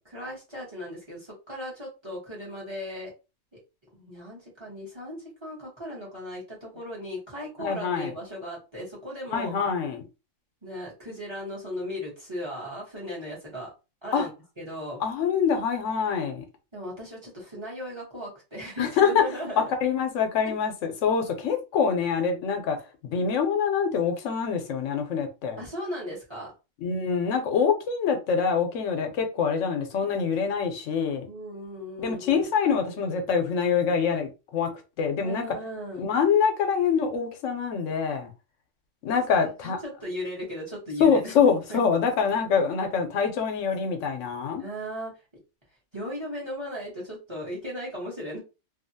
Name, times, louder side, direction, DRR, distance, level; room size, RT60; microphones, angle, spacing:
voice 1, 0.0-3.1 3.5-3.6 3.9-9.5 10.6-13.7 14.0-14.3 14.6-15.1 16.7-19.6 20.4-20.5 25.6-26.5 31.2-32.5 35.1-36.1 39.4-41.9 44.6-45.1 45.9-48.4, left 1 dB, 25° right, 1.1 m, -37 dB
voice 2, 7.6-8.1 9.3-10.0 14.1-14.3 15.0-16.4 18.8-19.2 19.6-22.8 23.0-25.6 26.8-31.3 32.0-34.7 35.0-35.5 36.0-38.3 39.0-39.8 41.0-44.6, left 6 dB, 85° left, 1.0 m, -25 dB
2.7 x 2.3 x 2.6 m
omnidirectional pair, 1.3 m